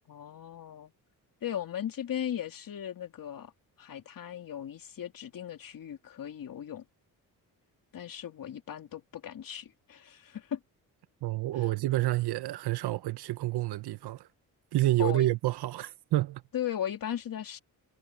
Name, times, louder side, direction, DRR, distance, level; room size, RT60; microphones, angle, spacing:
voice 1, 0.1-0.9 1.4-3.5 3.8-6.8 7.9-10.6 11.5-11.6 15.0-15.3 16.5-17.6, left 10 dB, 60° left, 2.8 m, -37 dB
voice 2, 11.2-14.3 14.7-16.4, right 16 dB, 85° right, 1.0 m, -28 dB
cardioid pair, 90°, 38 cm